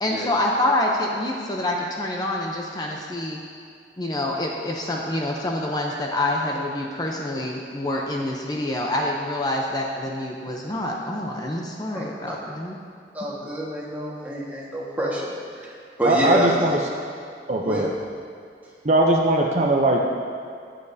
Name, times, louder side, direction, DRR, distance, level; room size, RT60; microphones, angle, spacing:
voice 1, 0.0-3.4 4.0-12.8, left 1 dB, 20° left, -1 dB, 0.6 m, -26 dB
voice 2, 11.9-12.3 13.1-16.5 17.6-17.9, right 1 dB, 10° right, -5 dB, 1.5 m, -28 dB
voice 3, 16.0-16.8 17.5-17.9 18.8-20.0, right 2 dB, 40° right, 0 dB, 0.6 m, -20 dB
14.5 x 8.8 x 2.7 m, 2.2 s
head